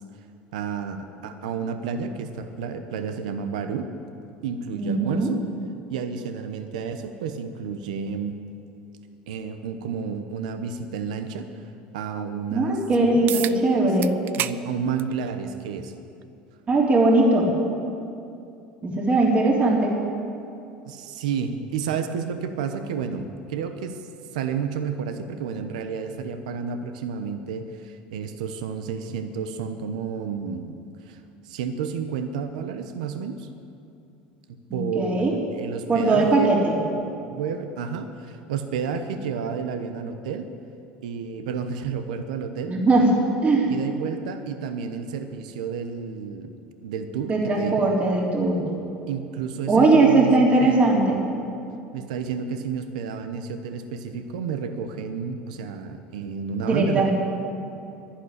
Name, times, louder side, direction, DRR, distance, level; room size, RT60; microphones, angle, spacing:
voice 1, 0.5-3.9 4.4-5.4 5.9-8.3 9.3-13.9 14.3-15.9 20.8-24.0 24.3-30.8 31.0-33.5 34.7-36.6 36.9-40.5 41.0-42.8 43.7-46.5 46.8-47.9 49.1-50.9 51.9-57.1, right 6 dB, 85° right, 8 dB, 1.0 m, -31 dB
voice 2, 4.8-5.3 12.5-14.1 16.7-17.5 18.8-19.9 34.7-35.3 35.9-36.7 42.7-43.1 43.4-43.7 47.3-48.6 49.7-51.2 56.6-57.1, right 2 dB, 35° right, -2 dB, 3.6 m, -20 dB
sound 1, 13.3-13.6 14.0-14.6 15.0-15.1 16.2-16.3 21.2-21.3, right 13 dB, 55° right, 0.5 m, -29 dB
11.5 x 11.5 x 10.0 m, 2.6 s
supercardioid pair, 95°, 4 cm